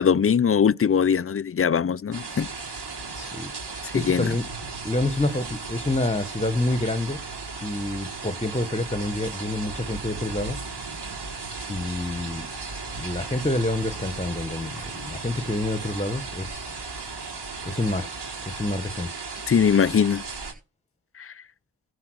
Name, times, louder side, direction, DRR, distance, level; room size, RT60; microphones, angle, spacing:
voice 1, 0.0-2.5 3.8-4.4 19.5-20.2 21.2-21.3, left 7 dB, 30° left, 0.5 m, -21 dB
sound 1, 2.1-20.5, right 4 dB, 60° right, 4.4 m, -36 dB
voice 2, 3.1-4.4 4.8-7.2 7.6-10.6 11.7-12.5 13.0-16.7 17.6-18.1 18.5-19.1, left 2 dB, 15° left, 1.4 m, -28 dB
15.0 x 5.0 x 6.4 m
cardioid pair, 45°, 44 cm